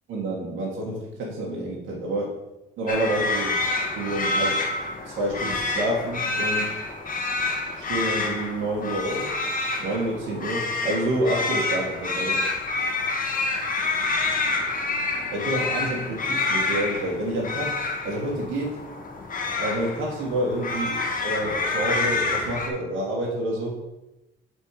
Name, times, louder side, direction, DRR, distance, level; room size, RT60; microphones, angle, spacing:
voice 1, 0.1-2.4 2.8-3.5 4.0-4.5 5.1-6.7 7.8-9.3 9.8-12.4 15.3-17.7 18.0-18.7 19.6-21.0 21.2-23.8, right 1 dB, 80° right, -4 dB, 1.9 m, -28 dB
sound 1, 2.9-22.7, left 3 dB, 45° left, 1.5 m, -28 dB
8.2 x 4.5 x 4.8 m, 0.97 s
cardioid pair, 90°, 20 cm